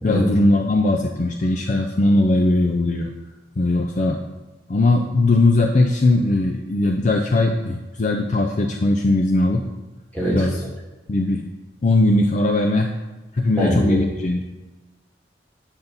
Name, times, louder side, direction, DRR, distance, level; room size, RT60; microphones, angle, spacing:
voice 1, 0.0-3.1 3.6-4.2 4.7-9.7 10.3-10.6 11.1-11.4 11.8-12.9 13.3-14.4, left 2 dB, 40° left, 3 dB, 0.5 m, -19 dB
voice 2, 10.1-10.5 13.6-14.0, equal, 10° left, -6 dB, 2.5 m, -22 dB
9.2 x 5.4 x 4.0 m, 1.1 s
head